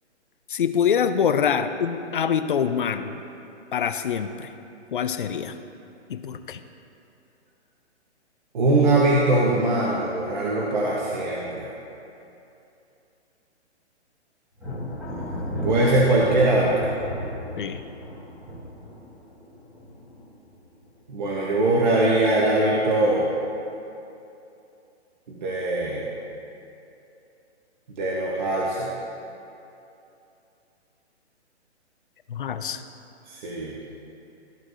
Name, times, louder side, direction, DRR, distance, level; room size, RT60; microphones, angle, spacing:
voice 1, 0.5-3.2 3.7-4.5 4.9-5.6 6.1-6.6 17.6-17.8 32.3-32.8, left 7 dB, 50° left, 9 dB, 0.5 m, -25 dB
voice 2, 8.5-11.7 15.1-15.2 15.6-16.9 21.1-23.3 25.3-26.1 28.0-28.9 33.3-33.8, right 2 dB, 40° right, -5 dB, 1.0 m, -22 dB
Thunder, 14.6-21.1 21.4-22.0 22.4-23.3, left 1 dB, 5° right, 0.9 m, -35 dB
13.5 x 4.6 x 2.5 m, 2.8 s
hypercardioid pair, 165°, 35 cm